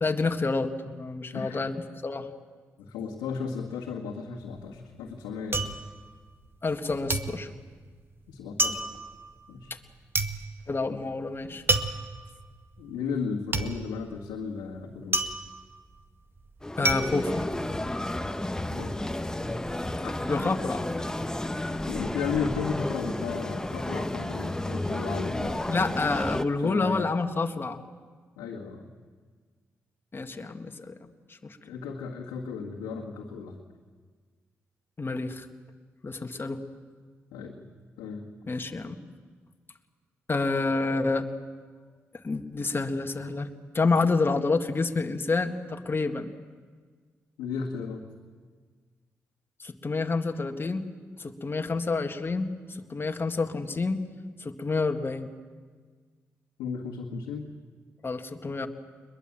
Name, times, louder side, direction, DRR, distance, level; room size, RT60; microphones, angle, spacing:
voice 1, 0.0-2.3 6.6-7.5 10.7-11.7 16.8-17.4 20.3-20.8 25.7-27.8 30.1-31.0 35.0-35.5 36.0-36.6 38.4-39.0 40.3-41.3 42.2-43.5 43.7-46.3 49.6-50.8 51.2-54.0 54.4-55.3 58.0-58.7, left 3 dB, 35° left, 5 dB, 1.9 m, -28 dB
voice 2, 1.3-1.7 2.8-5.7 8.3-8.8 9.5-9.7 12.8-15.2 18.7-19.0 20.0-20.2 21.9-25.9 26.6-27.0 28.4-28.9 31.6-33.6 37.3-37.6 38.0-38.3 47.4-48.0 56.6-57.5, left 5 dB, 85° left, -3 dB, 1.8 m, -34 dB
sound 1, 4.4-6.8 7.1-18.2 18.5-19.1, right 2 dB, 40° right, 1.8 m, -31 dB
sound 2, 16.6-26.5, left 1 dB, 10° left, 1.2 m, -32 dB
22.0 x 22.0 x 7.5 m, 1.5 s
hypercardioid pair, 45°, 6 cm